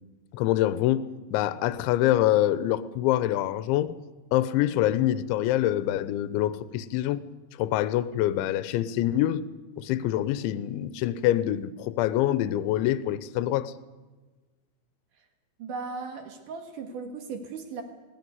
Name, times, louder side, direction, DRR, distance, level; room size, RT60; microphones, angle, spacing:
voice 1, 0.3-4.0 4.3-7.2 7.6-9.4 9.8-13.7, left 13 dB, 80° left, 15 dB, 3.1 m, -25 dB
voice 2, 15.6-17.8, right 4 dB, 55° right, 5 dB, 2.6 m, -37 dB
19.5 x 15.0 x 9.4 m, 1.3 s
omnidirectional pair, 5.4 m